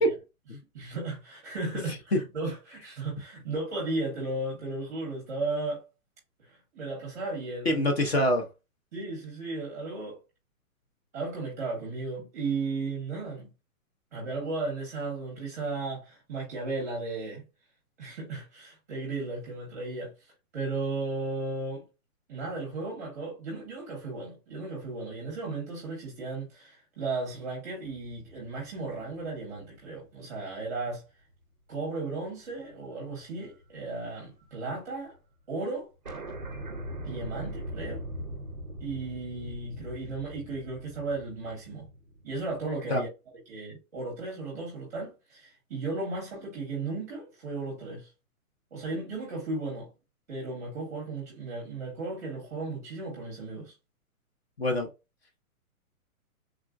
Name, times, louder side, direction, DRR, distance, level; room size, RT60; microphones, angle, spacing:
voice 1, 0.7-5.8 6.4-7.8 8.9-10.2 11.1-13.5 14.1-17.4 18.0-21.8 22.3-31.0 31.7-35.1 35.5-35.9 37.0-38.0 38.8-41.9 42.2-43.1 43.5-48.1 48.7-49.9 50.3-53.7, right 3 dB, 10° right, 0.8 m, -35 dB
voice 2, 7.6-8.5 42.9-43.0 54.6-54.9, equal, 45° left, 0.7 m, -24 dB
sound 1, 28.1-30.4 30.9-31.0 32.5-32.9 33.1-34.6 34.8-34.9 35.1-35.2 35.5-35.6 36.0-42.8, right 1 dB, 35° right, 0.4 m, -41 dB
3.6 x 2.1 x 2.4 m
hypercardioid pair, 180°, 43 cm